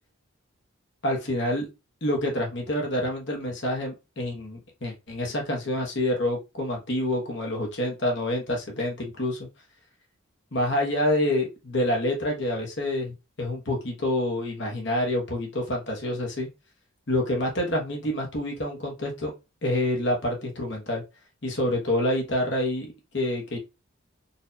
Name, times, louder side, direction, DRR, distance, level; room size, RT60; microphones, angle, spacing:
voice 1, 1.0-1.7 2.0-9.5 10.5-16.5 17.1-19.3 19.6-21.0 21.4-23.6, left 1 dB, 55° left, 0 dB, 1.1 m, -27 dB
4.1 x 2.6 x 2.7 m, 0.26 s
head